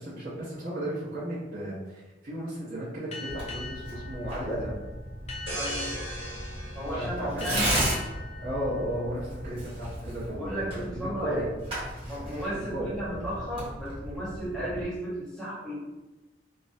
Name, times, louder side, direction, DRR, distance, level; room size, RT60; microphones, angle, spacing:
voice 1, 0.0-4.7 6.9-7.8 8.4-11.5 12.7-12.9, right 1 dB, 50° right, -10 dB, 0.7 m, -34 dB
Boat Water vehicle, 3.1-10.2, left 4 dB, 35° left, 0.4 m, -43 dB
Tearing, 3.3-14.8, right 1 dB, 30° right, 1.0 m, -35 dB
voice 2, 5.5-5.9 6.7-7.7 10.3-11.4 12.1-15.8, equal, ahead, -11 dB, 0.8 m, -34 dB
sound 1, 5.5-8.1 8.6-8.8, right 1 dB, 90° right, 0.8 m, -39 dB
2.3 x 2.0 x 2.6 m, 1.1 s
head